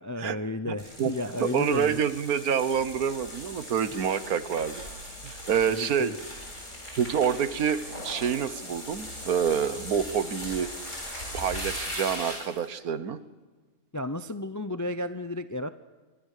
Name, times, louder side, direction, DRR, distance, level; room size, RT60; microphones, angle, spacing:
voice 1, 0.0-2.0 5.7-6.2 13.9-15.7, left 1 dB, 25° left, 11 dB, 0.4 m, -33 dB
voice 2, 0.7-1.1 1.4-4.8 5.2-6.1 7.0-10.7 11.3-13.2, right 8 dB, 85° right, 13 dB, 1.6 m, -27 dB
sound 1, 0.8-12.6, left 1 dB, 60° left, 7.7 m, -39 dB
25.5 x 22.5 x 6.6 m, 1.3 s
omnidirectional pair, 1.5 m